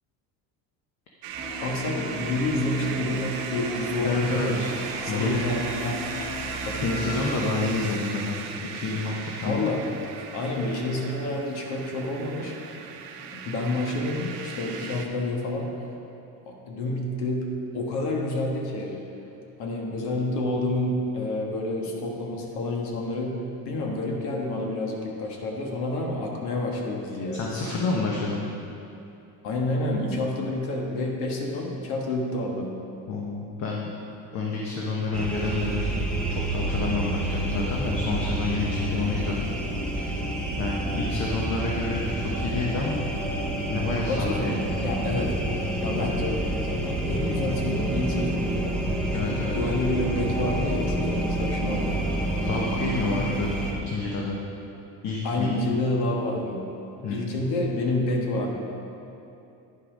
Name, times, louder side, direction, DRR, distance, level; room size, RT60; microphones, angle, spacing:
sound 1, 1.2-15.1, right 6 dB, 60° right, 0.8 m, -37 dB
sound 2, 1.3-7.3, equal, 15° right, 1.1 m, -36 dB
voice 1, 1.6-4.7 5.0-6.0 6.6-7.1 9.4-9.8 10.3-12.5 13.3-15.7 16.5-17.5 17.7-18.9 19.6-23.4 23.6-27.4 29.4-32.7 44.1-48.8 49.1-52.0 55.2-56.6 57.1-58.5, left 2 dB, 70° left, 0 dB, 1.5 m, -28 dB
voice 2, 4.0-4.7 5.1-5.4 6.8-9.7 27.3-28.4 33.1-33.9 34.3-39.5 40.0-40.1 40.6-43.0 43.7-44.5 48.8-49.7 52.4-54.4 55.0-55.5 57.0-57.3, left 3 dB, 45° left, -3 dB, 1.0 m, -29 dB
sound 3, 35.1-53.7, right 1 dB, ahead, 0.7 m, -28 dB
9.9 x 5.6 x 5.0 m, 2.8 s
cardioid pair, 155°, 39 cm